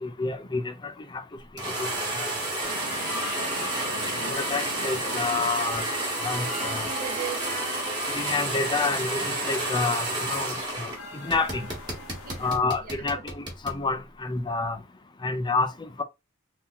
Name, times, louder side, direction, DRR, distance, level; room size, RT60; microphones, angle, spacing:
voice 1, 0.0-1.2 1.8-1.9 2.2-2.3 4.3-5.8 6.2-6.9 8.1-10.9 11.1-11.7 12.4-14.8 15.2-16.0, left 3 dB, 20° left, 0.4 m, -29 dB
sound 1, 1.6-11.0 11.3-13.8, right 2 dB, 20° right, 1.4 m, -30 dB
sound 2, 2.6-12.6, left 2 dB, 80° left, 0.9 m, -39 dB
voice 2, 3.3-3.7 6.6-8.0 12.3-12.6 12.8-13.2, right 7 dB, 45° right, 0.9 m, -39 dB
3.6 x 2.8 x 2.8 m
head